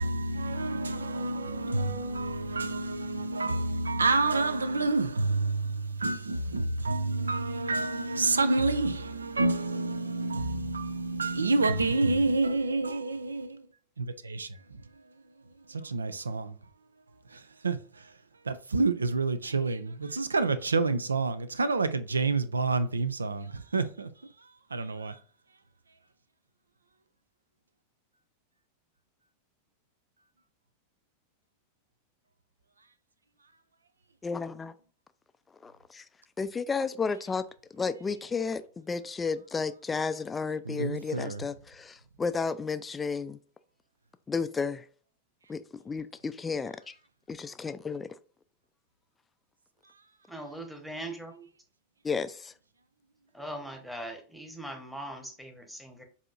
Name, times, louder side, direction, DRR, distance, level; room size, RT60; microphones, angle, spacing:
voice 1, 0.0-13.6 14.0-14.5 15.7-16.5 17.3-17.8 18.5-24.1 24.7-25.2 40.7-41.4, right 3 dB, 75° right, 0.4 m, -28 dB
voice 2, 34.2-34.7 35.6-36.0 36.4-37.4 37.7-43.4 44.3-44.8 45.5-46.9 47.3-48.1 52.0-52.5, left 5 dB, 15° left, 0.4 m, -32 dB
voice 3, 50.3-51.5 53.3-56.0, right 1 dB, ahead, 1.1 m, -40 dB
7.4 x 2.8 x 2.5 m
figure-of-eight pair, 90°, 0 cm